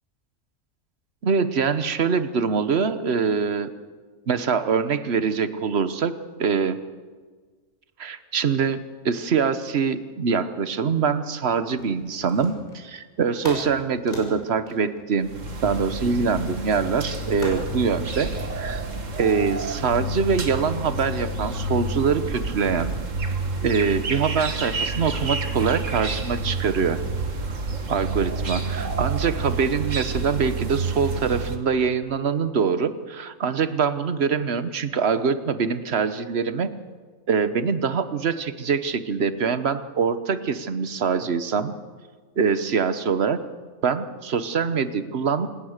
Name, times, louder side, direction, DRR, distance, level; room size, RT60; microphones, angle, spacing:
voice 1, 1.2-3.7 4.3-6.8 8.0-15.3 15.6-18.8 19.2-22.9 23.6-27.0 27.9-36.7 37.3-41.7 42.4-43.4 43.8-45.5, right 6 dB, 55° right, 12 dB, 1.3 m, -24 dB
sound 1, 11.8-12.9 13.4-15.9 17.4-17.8, left 1 dB, 35° left, 6.2 m, -36 dB
sound 2, 15.2-31.6, right 3 dB, 70° right, 2.2 m, -29 dB
26.5 x 20.5 x 6.6 m, 1.5 s
omnidirectional pair, 1.4 m